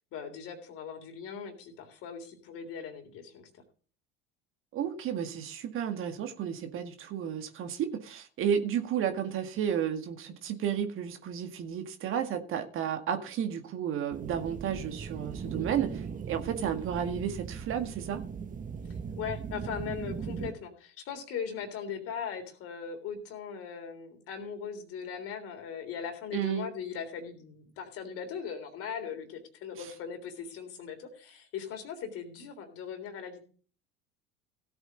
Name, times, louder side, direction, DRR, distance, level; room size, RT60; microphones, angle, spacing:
voice 1, 0.1-3.6 18.9-33.4, left 7 dB, 50° left, 6 dB, 3.6 m, -39 dB
voice 2, 4.7-18.2 26.3-26.7 29.8-29.9, right 8 dB, 45° right, 7 dB, 1.8 m, -32 dB
sound 1, 14.1-20.5, right 6 dB, 25° right, 1.3 m, -39 dB
17.0 x 8.1 x 3.9 m, 0.41 s
figure-of-eight pair, 70°, 30 cm